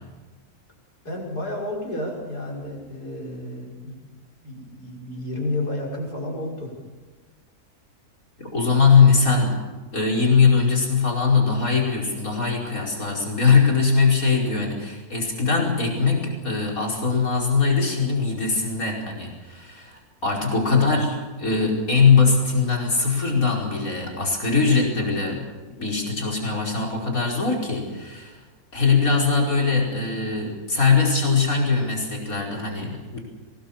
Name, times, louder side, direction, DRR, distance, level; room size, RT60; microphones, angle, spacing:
voice 1, 1.0-4.0 4.4-6.7 20.6-20.9, left 1 dB, 85° left, -2 dB, 6.6 m, -31 dB
voice 2, 8.4-9.6 9.9-25.5 25.8-28.4 28.7-33.2, left 5 dB, 60° left, -1 dB, 5.4 m, -21 dB
23.0 x 20.0 x 7.2 m, 1.3 s
omnidirectional pair, 1.6 m